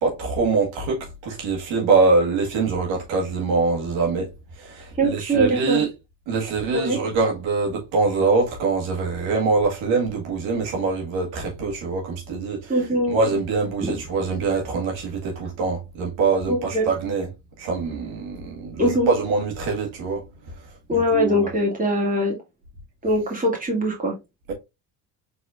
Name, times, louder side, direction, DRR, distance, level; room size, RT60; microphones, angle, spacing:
voice 1, 0.0-4.3 4.6-5.9 6.3-12.7 13.1-17.3 17.6-20.2 20.9-21.4, right 4 dB, 70° right, 1.8 m, -24 dB
voice 2, 5.0-5.8 6.7-7.0 12.7-13.2 13.8-13.9 16.5-16.9 18.8-19.1 20.9-22.4 23.0-24.1, equal, 15° right, 2.4 m, -22 dB
4.3 x 4.2 x 2.4 m
supercardioid pair, 90°, 48 cm